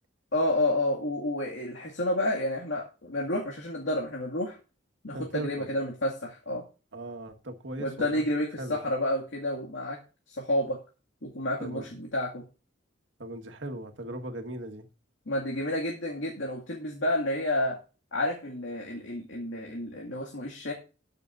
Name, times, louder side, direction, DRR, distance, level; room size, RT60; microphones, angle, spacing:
voice 1, 0.3-4.6 5.0-6.6 7.8-10.0 10.3-10.8 11.2-12.4 15.3-17.8 18.1-20.7, left 1 dB, 90° left, 2.2 m, -30 dB
voice 2, 5.1-5.7 6.9-8.2 8.6-8.8 11.6-11.9 13.2-14.9, right 1 dB, 80° right, 1.6 m, -38 dB
20.0 x 6.8 x 2.6 m
head